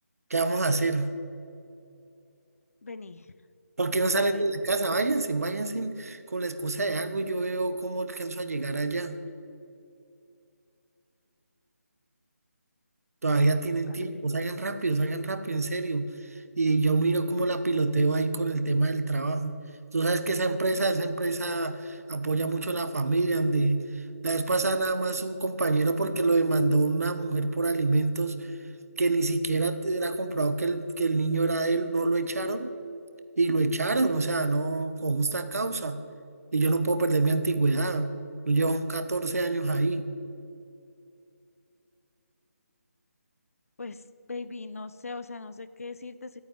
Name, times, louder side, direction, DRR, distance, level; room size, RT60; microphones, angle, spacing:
voice 1, 0.3-1.1 3.8-9.2 13.2-19.6 19.9-23.8 24.2-28.5 29.0-32.7 33.4-36.0 36.5-38.1 38.4-40.1, right 3 dB, 65° right, 9 dB, 1.4 m, -26 dB
voice 2, 2.8-3.3 4.2-4.4 13.9-14.0 43.8-44.0 44.3-46.4, left 3 dB, 65° left, 13 dB, 0.8 m, -39 dB
14.0 x 9.3 x 9.4 m, 2.6 s
hypercardioid pair, 175°, 9 cm